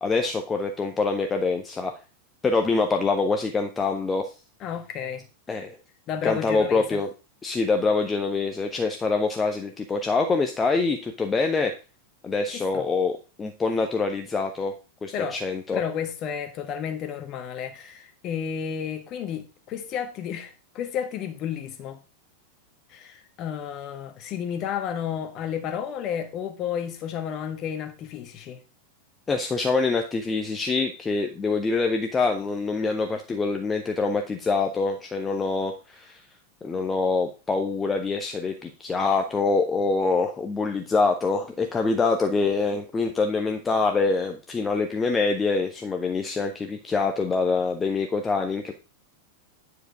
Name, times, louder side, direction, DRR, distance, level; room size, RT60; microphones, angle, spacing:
voice 1, 0.0-1.9 2.4-4.3 5.5-5.8 6.2-7.1 7.4-11.7 12.2-14.7 15.0-15.8 29.3-36.2 36.6-48.7, left 4 dB, 15° left, 0.8 m, -25 dB
voice 2, 4.6-5.3 6.1-7.0 12.5-12.8 15.1-15.4 15.7-22.0 22.9-28.6, left 8 dB, 35° left, 1.4 m, -32 dB
9.3 x 4.9 x 4.8 m
figure-of-eight pair, 90°, 0 cm